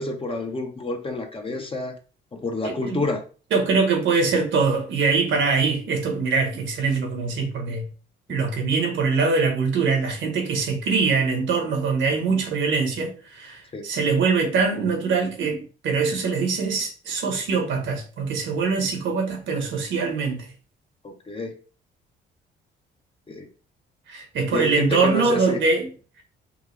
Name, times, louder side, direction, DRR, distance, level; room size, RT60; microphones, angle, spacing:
voice 1, 0.0-1.9 2.3-3.2 12.3-12.4 13.7-13.8 21.0-21.6 23.3-23.5 24.5-25.6, left 2 dB, 25° left, 1.0 m, -28 dB
voice 2, 2.6-3.0 3.5-7.9 8.3-20.5 24.1-25.9, right 4 dB, 75° right, 1.5 m, -23 dB
5.5 x 2.4 x 3.4 m
cardioid pair, 90°, 20 cm